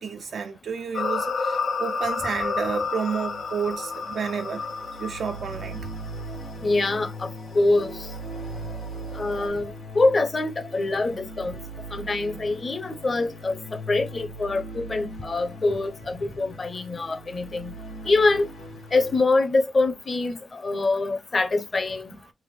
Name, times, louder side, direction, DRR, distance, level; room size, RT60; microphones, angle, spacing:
voice 1, 0.0-4.7 5.0-5.9 11.5-11.6 12.8-12.9, right 6 dB, 70° right, 0.3 m, -31 dB
sound 1, 0.9-9.5, left 4 dB, 70° left, 1.3 m, -32 dB
sound 2, 3.2-19.2, right 1 dB, 90° left, 1.2 m, -39 dB
voice 2, 6.6-7.3 7.5-8.0 9.1-11.6 11.9-13.6 13.9-17.7 18.1-18.5 18.9-22.1, left 3 dB, 35° left, 0.6 m, -24 dB
3.3 x 2.1 x 3.2 m
wide cardioid pair, 135°, 0 cm